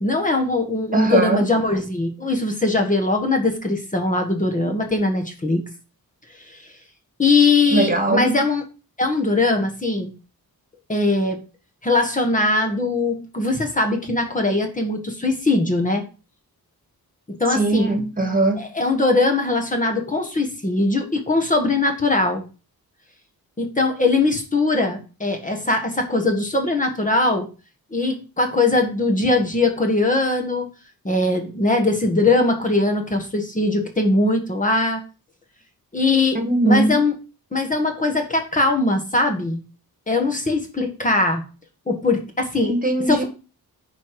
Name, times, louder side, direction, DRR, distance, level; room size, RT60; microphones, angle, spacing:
voice 1, 0.0-5.6 6.5-6.6 7.2-8.6 9.0-10.1 10.9-11.4 11.8-16.0 17.3-17.9 18.6-22.4 23.6-27.5 27.9-30.7 31.0-35.0 35.9-36.4 36.6-37.1 37.5-39.6 40.1-41.4 41.9-42.7 43.1-43.2, left 2 dB, 20° left, 1.6 m, -21 dB
voice 2, 0.9-1.4 7.7-8.3 17.5-18.6 36.3-37.0 42.6-43.2, right 2 dB, 20° right, 1.8 m, -20 dB
10.0 x 5.0 x 4.9 m
wide cardioid pair, 145°, 37 cm